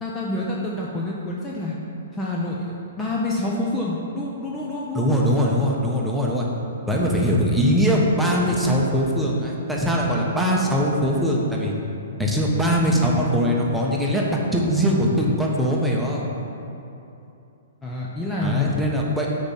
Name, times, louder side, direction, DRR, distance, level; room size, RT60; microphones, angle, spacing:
voice 1, 0.0-1.8 2.1-5.1 17.8-18.7, left 2 dB, 15° left, -4 dB, 0.8 m, -27 dB
voice 2, 4.9-6.5 6.9-11.7 12.2-16.3 18.4-19.3, equal, 5° right, -3 dB, 1.1 m, -21 dB
6.5 x 4.8 x 5.5 m, 2.8 s
figure-of-eight pair, 120°, 0 cm